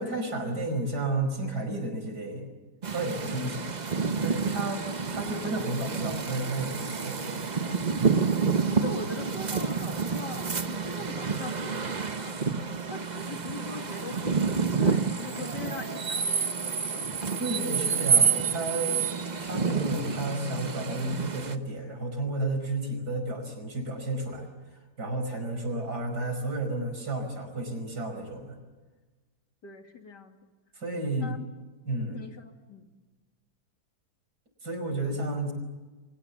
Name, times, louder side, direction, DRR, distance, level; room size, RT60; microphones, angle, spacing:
voice 1, 0.0-2.5 2.9-3.6 4.2-7.5 17.4-19.0 19.4-24.5 25.0-28.6 30.8-31.3 31.9-32.3 34.6-35.5, right 2 dB, 70° right, 5 dB, 5.7 m, -32 dB
sound 1, 2.8-21.6, right 5 dB, 30° right, 0.9 m, -29 dB
voice 2, 3.3-3.6 8.7-12.4 12.9-17.2 17.9-18.0 29.6-30.4 31.2-31.5 32.1-32.8, left 4 dB, 85° left, 4 dB, 3.1 m, -42 dB
30.0 x 24.0 x 7.2 m, 1.3 s
omnidirectional pair, 1.8 m